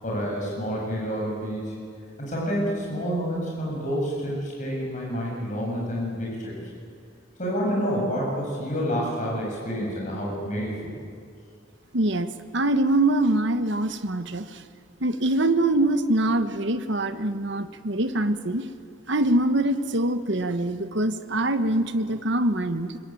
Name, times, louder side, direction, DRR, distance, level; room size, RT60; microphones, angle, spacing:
voice 1, 0.0-1.7 2.2-6.5 7.4-11.0, equal, 40° left, -4 dB, 7.9 m, -28 dB
voice 2, 11.9-14.5 15.0-18.7 19.1-23.0, right 1 dB, 65° right, 9 dB, 1.4 m, -24 dB
26.5 x 23.0 x 9.1 m, 2.3 s
head